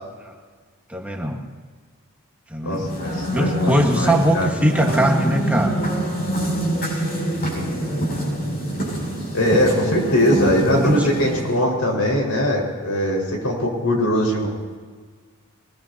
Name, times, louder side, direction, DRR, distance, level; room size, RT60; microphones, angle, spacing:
voice 1, 0.9-1.4 2.5-2.9 3.3-5.8 10.4-11.1, equal, 5° right, 1 dB, 1.5 m, -21 dB
voice 2, 2.6-4.5 9.3-14.5, equal, 75° left, 0 dB, 5.0 m, -21 dB
sound 1, 2.7-11.6, right 1 dB, 45° left, 6.8 m, -25 dB
23.5 x 21.0 x 2.8 m, 1.5 s
head